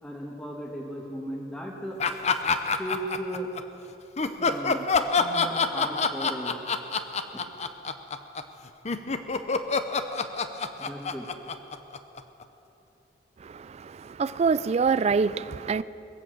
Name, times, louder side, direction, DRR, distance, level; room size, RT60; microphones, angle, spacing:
voice 1, 0.0-2.0 2.8-3.5 4.4-4.8 5.2-7.4 10.8-11.3, equal, 10° left, 1.5 m, -36 dB
sound 1, 2.0-3.6 4.2-12.4, left 4 dB, 40° left, 0.7 m, -26 dB
voice 2, 14.2-15.8, right 5 dB, 40° right, 0.3 m, -24 dB
21.5 x 8.8 x 7.6 m
head